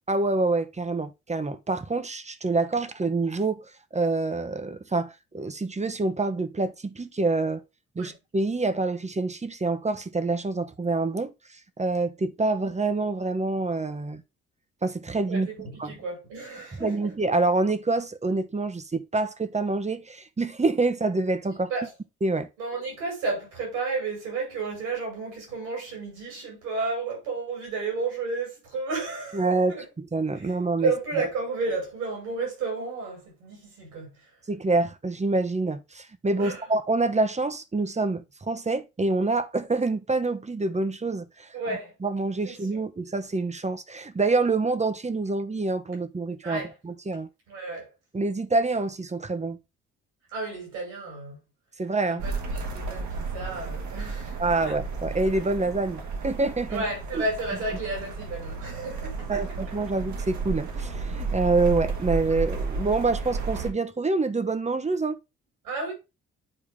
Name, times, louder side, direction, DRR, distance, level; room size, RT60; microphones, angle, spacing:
voice 1, 0.1-7.6 8.0-11.3 11.8-14.2 14.8-15.5 15.8-15.9 16.8-21.7 22.2-22.5 29.3-30.9 34.5-41.5 42.0-47.3 48.1-49.6 51.8-52.2 54.4-56.8 59.3-65.2, right 3 dB, 20° right, 1.0 m, -26 dB
voice 2, 15.3-17.1 21.7-21.9 22.6-29.9 30.3-30.5 30.8-34.1 36.4-36.7 41.5-41.9 42.4-42.8 46.4-46.7 47.5-47.9 50.3-51.4 52.1-54.8 56.7-59.6 65.6-65.9, right 3 dB, 75° right, 5.1 m, -32 dB
sound 1, 52.2-63.7, right 4 dB, 55° right, 1.7 m, -33 dB
9.0 x 4.6 x 3.5 m
figure-of-eight pair, 40°, 34 cm